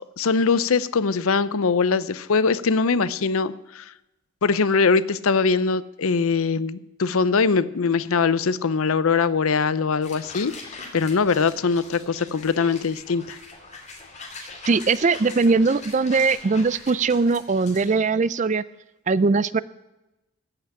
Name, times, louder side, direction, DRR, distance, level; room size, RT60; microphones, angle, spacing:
voice 1, 0.2-3.9 4.4-13.4, left 5 dB, 75° left, 16 dB, 0.6 m, -22 dB
sound 1, 10.0-18.0, left 3 dB, 30° left, 2.6 m, -42 dB
voice 2, 14.7-18.6 19.1-19.6, right 4 dB, 35° right, 17 dB, 0.4 m, -20 dB
14.5 x 5.9 x 9.9 m, 0.97 s
head